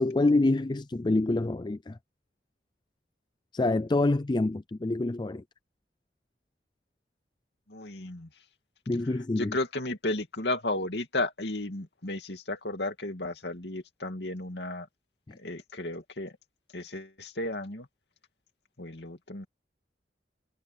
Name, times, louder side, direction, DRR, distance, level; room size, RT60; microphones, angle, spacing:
voice 1, 0.0-2.0 3.5-5.4 8.9-9.6, left 2 dB, 25° left, 0.4 m, -26 dB
voice 2, 7.7-8.3 9.4-14.9 15.3-16.3 16.7-17.9 18.8-19.5, left 2 dB, 65° left, 2.6 m, -33 dB
head